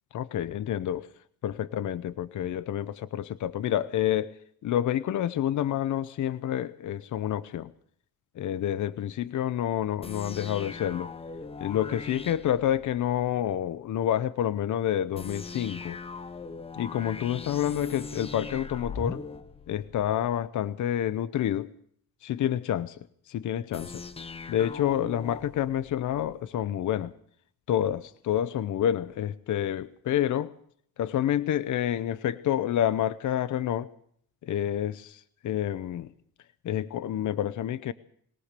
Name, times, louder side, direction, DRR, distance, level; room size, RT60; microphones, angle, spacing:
voice 1, 0.1-1.1 1.4-4.4 4.6-7.7 8.4-11.1 11.6-16.0 16.8-19.2 19.7-21.7 22.2-23.0 23.3-24.0 24.5-27.1 27.7-30.5 31.0-33.9 34.4-36.1 36.6-37.9, left 11 dB, 60° left, 14 dB, 0.8 m, -28 dB
sound 1, 10.0-13.3 15.1-20.4 23.7-26.4, left 4 dB, 15° left, 0.9 m, -41 dB
22.0 x 18.5 x 6.7 m, 0.65 s
cardioid pair, 135°, 34 cm